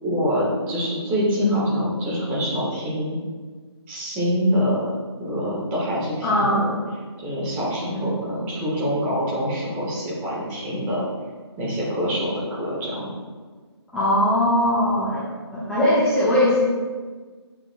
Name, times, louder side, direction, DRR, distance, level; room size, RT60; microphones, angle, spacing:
voice 1, 0.0-3.2 3.9-4.9 5.2-6.8 7.2-11.0 11.6-13.1, equal, 15° right, -6 dB, 1.4 m, -25 dB
voice 2, 6.2-6.6 7.9-8.1 13.9-15.2 15.5-16.6, left 1 dB, 5° left, -13 dB, 1.0 m, -20 dB
8.8 x 6.8 x 2.3 m, 1.4 s
figure-of-eight pair, 155°, 15 cm